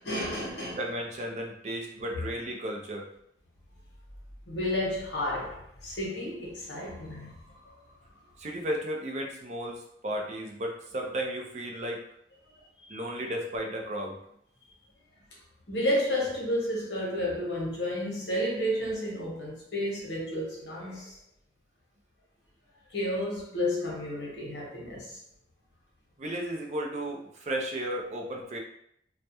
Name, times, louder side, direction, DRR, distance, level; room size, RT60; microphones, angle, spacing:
voice 1, 0.0-0.8 4.5-7.7 12.9-13.0 15.7-21.2 22.9-25.2, left 1 dB, 85° left, 0.8 m, -31 dB
voice 2, 0.8-3.1 8.4-12.0 12.9-14.2 26.2-28.6, right 1 dB, 40° right, 0.4 m, -34 dB
2.2 x 2.1 x 2.8 m
head